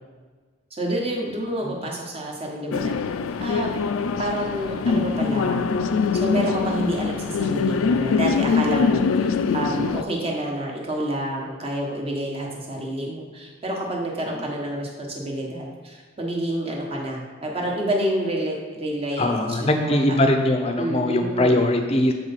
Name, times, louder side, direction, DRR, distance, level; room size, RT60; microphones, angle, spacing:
voice 1, 0.7-3.0 3.4-3.7 4.2-20.0 20.8-21.6, right 1 dB, 30° right, -2 dB, 1.0 m, -28 dB
sound 1, 2.7-10.0, left 5 dB, 80° left, 0.3 m, -23 dB
voice 2, 19.2-22.1, left 1 dB, 30° left, 5 dB, 0.5 m, -21 dB
6.7 x 4.8 x 4.1 m, 1.4 s
head